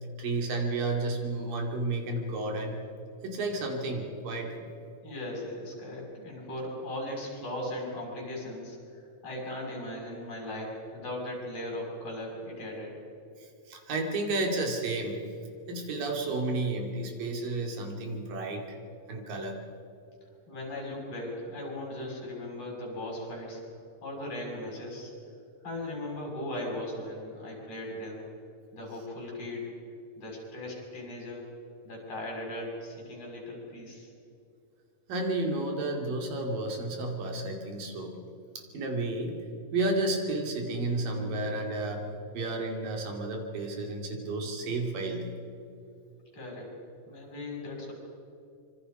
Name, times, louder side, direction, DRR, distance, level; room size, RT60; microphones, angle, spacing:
voice 1, 0.0-2.8 3.2-4.5 13.7-15.2 15.7-18.7 19.1-19.6 35.1-38.2 38.6-39.4 39.7-42.0 42.3-45.3, right 2 dB, 80° right, 2 dB, 4.3 m, -31 dB
voice 2, 5.0-12.9 20.5-23.6 24.0-25.1 25.6-28.2 28.7-29.7 30.2-31.5 31.8-34.1 46.3-46.7 47.1-47.9, left 1 dB, 45° left, -2 dB, 7.6 m, -38 dB
25.5 x 25.0 x 5.4 m, 2.6 s
omnidirectional pair, 3.9 m